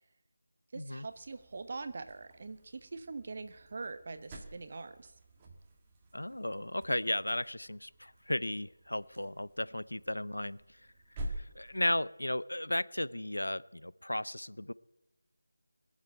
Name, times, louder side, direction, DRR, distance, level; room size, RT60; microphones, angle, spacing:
voice 1, 0.7-5.1, right 3 dB, 40° right, 10 dB, 1.1 m, -43 dB
sound 1, 1.1-12.2, right 1 dB, 15° right, 1.7 m, -49 dB
voice 2, 6.1-10.6 11.4-14.7, left 1 dB, 90° left, 19 dB, 0.6 m, -35 dB
21.5 x 7.5 x 9.0 m, 0.95 s
figure-of-eight pair, 170°, 0 cm